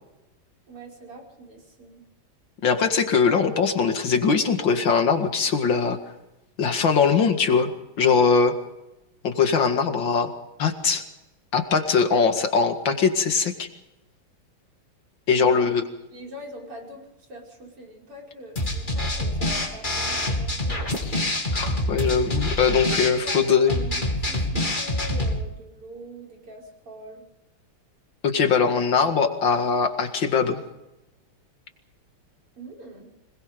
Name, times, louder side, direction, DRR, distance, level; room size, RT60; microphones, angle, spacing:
voice 1, 0.7-2.0 15.3-15.7 16.1-21.1 23.2-27.2 32.6-33.1, right 1 dB, 85° right, -1 dB, 6.3 m, -42 dB
voice 2, 2.6-6.0 6.6-7.7 8.0-8.5 9.2-10.3 10.6-11.0 11.5-13.7 15.3-15.8 21.5-23.7 28.2-30.6, left 5 dB, 60° left, 6 dB, 2.6 m, -21 dB
sound 1, 18.6-25.4, left 1 dB, 20° left, 2.5 m, -26 dB
25.5 x 21.0 x 5.3 m, 0.95 s
omnidirectional pair, 2.4 m